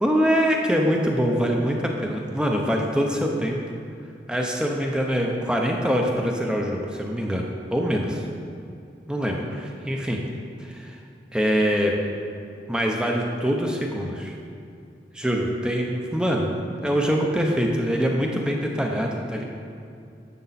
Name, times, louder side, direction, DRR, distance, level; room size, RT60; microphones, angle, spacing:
voice 1, 0.0-3.6 4.3-8.2 9.1-10.2 10.6-11.0 11.3-12.0 12.7-14.3 15.1-16.5 16.8-19.4, equal, 5° right, 0 dB, 0.8 m, -24 dB
11.0 x 7.5 x 4.2 m, 2.5 s
head